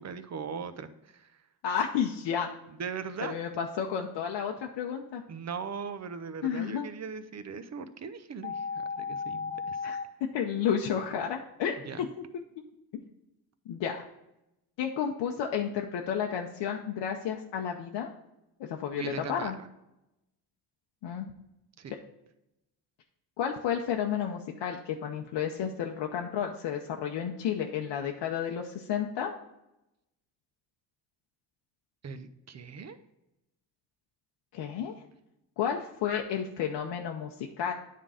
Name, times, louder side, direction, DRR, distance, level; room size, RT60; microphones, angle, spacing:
voice 1, 0.0-1.4 2.7-3.4 5.3-9.9 11.8-12.1 19.0-19.5 21.8-21.9 32.0-33.0, right 5 dB, 40° right, 11 dB, 0.7 m, -39 dB
voice 2, 1.6-2.5 3.2-5.2 6.4-6.9 9.8-10.0 10.3-11.8 13.7-14.0 14.8-18.1 18.6-19.5 21.0-21.3 23.4-29.3 34.5-34.9 35.6-37.7, left 8 dB, 80° left, 2 dB, 0.8 m, -31 dB
sound 1, 8.4-10.0, left 5 dB, 25° left, 0.7 m, -34 dB
9.3 x 3.7 x 4.9 m, 0.89 s
cardioid pair, 95°, 43 cm